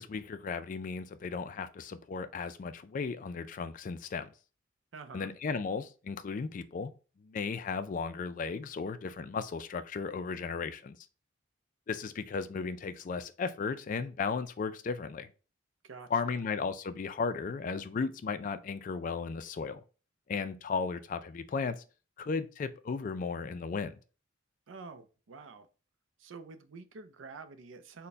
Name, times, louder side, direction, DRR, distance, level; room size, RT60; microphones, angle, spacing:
voice 1, 0.0-4.3 5.1-6.9 7.2-11.0 11.9-15.3 16.1-19.8 20.3-21.8 22.2-23.9, left 5 dB, 40° left, 0.3 m, -35 dB
voice 2, 4.9-5.3 15.8-16.4 24.7-25.7 26.2-28.1, right 4 dB, 75° right, 0.5 m, -48 dB
4.1 x 2.2 x 3.4 m
head